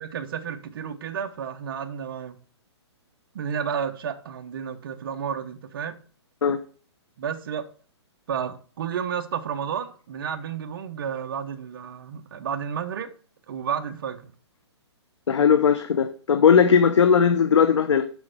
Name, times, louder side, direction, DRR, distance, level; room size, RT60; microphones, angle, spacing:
voice 1, 0.0-2.4 3.3-6.0 7.2-7.7 8.3-13.1 13.5-14.3, right 7 dB, 50° right, 1.0 m, -31 dB
voice 2, 15.3-18.0, left 7 dB, 80° left, 0.9 m, -18 dB
6.8 x 6.3 x 6.6 m
hypercardioid pair, 160°, 15 cm